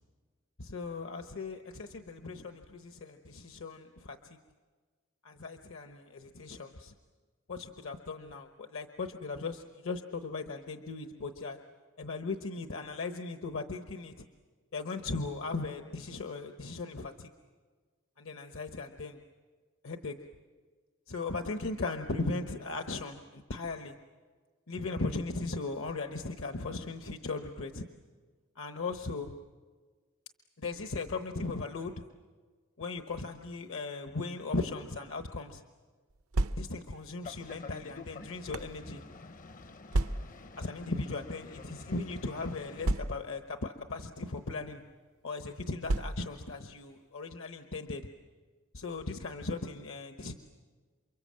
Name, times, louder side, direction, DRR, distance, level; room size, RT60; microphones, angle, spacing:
voice 1, 0.6-4.4 5.2-6.9 7.5-11.6 12.0-14.3 14.7-17.3 18.2-19.2 19.8-20.2 21.1-23.9 24.7-27.9 28.6-29.3 30.6-31.9 32.8-35.6 36.6-39.0 40.6-44.8 45.2-48.1 48.7-50.3, left 3 dB, 65° left, 6 dB, 1.1 m, -38 dB
sound 1, 36.1-37.0 37.8-38.8 39.9-40.5 41.4-41.6 41.8-41.9 42.8-43.5 44.4-44.6 45.8-46.5, right 2 dB, 80° right, 0.7 m, -32 dB
Boat Water vehicle, 37.2-42.9, left 3 dB, 40° left, 0.7 m, -49 dB
29.0 x 24.0 x 7.6 m, 1.5 s
head